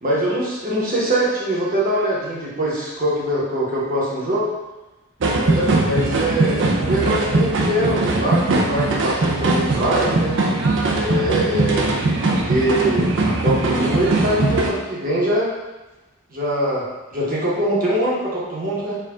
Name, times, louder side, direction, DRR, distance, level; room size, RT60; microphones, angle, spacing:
voice 1, 0.0-4.5 5.4-10.4 10.9-11.9 12.3-15.5 16.3-19.0, right 1 dB, 40° right, -5 dB, 1.1 m, -23 dB
sound 1, 5.2-14.7, right 2 dB, 55° right, 0.5 m, -20 dB
4.6 x 2.4 x 3.6 m, 1.1 s
head